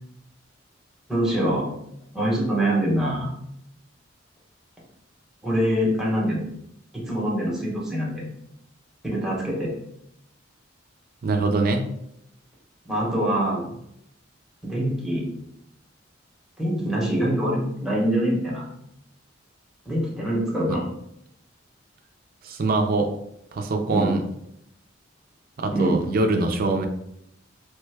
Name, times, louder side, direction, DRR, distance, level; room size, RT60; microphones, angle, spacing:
voice 1, 1.1-1.7 2.1-3.3 5.4-6.4 7.1-8.3 9.0-9.7 12.8-13.7 14.6-15.2 16.6-18.6 19.9-20.8 23.9-24.1 25.7-26.0, right 1 dB, ahead, -5 dB, 0.9 m, -24 dB
voice 2, 11.2-11.9 20.7-20.8 22.4-23.1 23.5-24.2 25.6-26.9, right 3 dB, 50° right, 4 dB, 0.4 m, -23 dB
3.2 x 2.2 x 3.3 m, 0.76 s
head